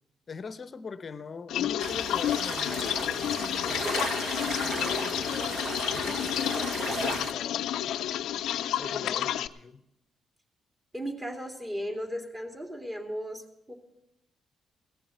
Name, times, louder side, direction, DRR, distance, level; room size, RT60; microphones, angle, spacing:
voice 1, 0.3-6.6 6.9-7.8 8.8-9.8, left 5 dB, 40° left, 0.8 m, -42 dB
sound 1, 1.5-9.5, left 11 dB, 80° left, 0.5 m, -30 dB
sound 2, 1.8-7.3, right 3 dB, 45° right, 1.4 m, -35 dB
voice 2, 8.8-9.2 10.9-13.7, equal, 15° right, 2.8 m, -36 dB
17.5 x 7.2 x 8.0 m
cardioid pair, 90°, 0 cm